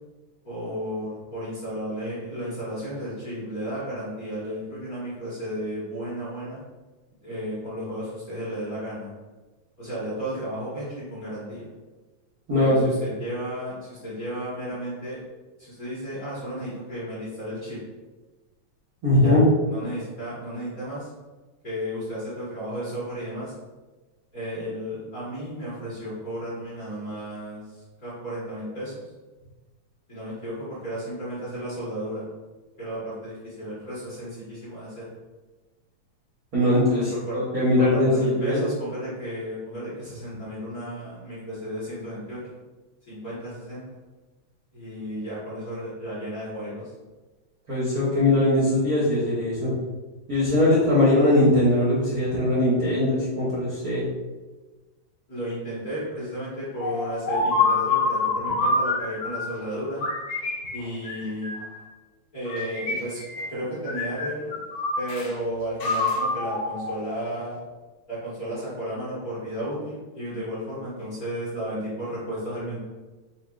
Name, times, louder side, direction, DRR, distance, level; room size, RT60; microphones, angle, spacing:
voice 1, 0.4-6.6 7.2-9.1 9.8-11.7 12.6-15.2 15.6-17.8 19.1-19.4 19.7-21.1 21.6-23.5 24.3-29.0 30.1-32.2 32.8-35.1 36.9-37.4 37.8-42.6 43.1-44.0 44.7-46.9 55.3-60.1 60.7-61.5 62.3-63.2 63.5-64.6 65.0-67.6 68.1-72.8, equal, 45° left, -10 dB, 1.3 m, -33 dB
voice 2, 12.5-12.8 19.0-19.4 36.5-38.6 47.7-49.7 50.3-54.1, left 1 dB, 80° right, -9 dB, 0.8 m, -21 dB
sound 1, 56.8-59.6 60.0-61.8 62.5-63.6 63.9-65.3 65.8-67.6, left 3 dB, 70° left, 1.5 m, -27 dB
6.2 x 2.5 x 2.4 m, 1.2 s
omnidirectional pair, 3.3 m